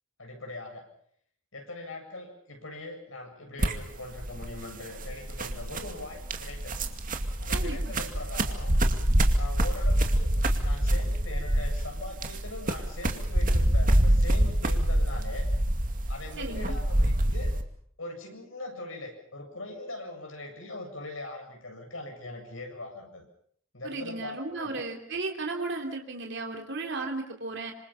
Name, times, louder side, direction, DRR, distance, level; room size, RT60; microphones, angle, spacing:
voice 1, 0.2-0.9 1.5-6.8 7.4-8.7 9.3-10.3 10.6-15.5 16.1-17.5 18.0-23.3 23.7-24.8, left 2 dB, 80° left, 3 dB, 7.8 m, -41 dB
sound 1, 3.6-17.6, right 1 dB, 45° right, 2.3 m, -26 dB
voice 2, 7.5-7.9 16.4-16.8 23.8-27.7, right 3 dB, 60° right, 2 dB, 3.3 m, -35 dB
26.5 x 26.5 x 5.8 m, 0.62 s
head